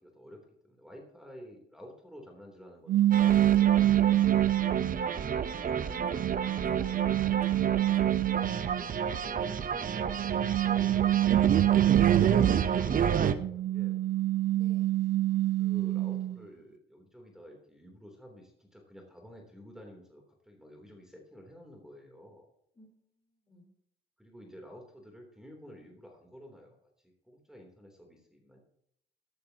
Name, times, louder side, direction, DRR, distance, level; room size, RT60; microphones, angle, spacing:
voice 1, 0.0-4.4 9.0-14.0 15.6-22.5 24.2-28.6, equal, 5° right, 1 dB, 3.2 m, -51 dB
sound 1, 2.9-5.1 5.7-8.8 10.0-12.9 13.4-16.4, right 13 dB, 65° right, 0.4 m, -26 dB
sound 2, 3.1-13.3, right 7 dB, 45° right, 0.8 m, -30 dB
voice 2, 4.8-8.5 14.5-15.0 22.8-23.2 23.5-23.7, left 1 dB, 25° left, 2 dB, 3.7 m, -53 dB
14.0 x 13.0 x 2.9 m, 0.71 s
cardioid pair, 90°, 20 cm